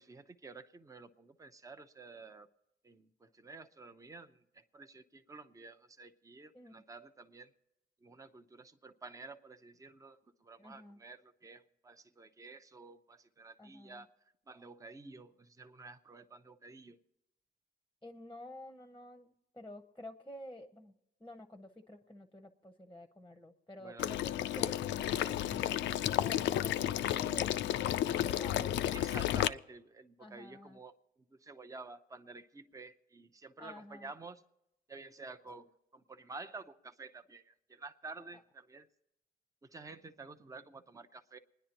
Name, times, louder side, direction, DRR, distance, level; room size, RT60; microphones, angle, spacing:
voice 1, 0.0-2.5 2.8-7.5 8.0-14.1 14.5-17.0 23.8-24.1 28.9-31.0 31.3-34.4 34.9-38.9 39.6-41.4, right 3 dB, 15° right, 0.6 m, -51 dB
voice 2, 10.6-11.0 13.6-14.1 18.0-20.9 21.2-28.9 30.2-30.8 33.6-34.1, left 1 dB, 10° left, 0.8 m, -50 dB
Water / Liquid, 24.0-29.5, left 12 dB, 70° left, 0.4 m, -32 dB
28.5 x 10.0 x 3.0 m
cardioid pair, 90°, 20 cm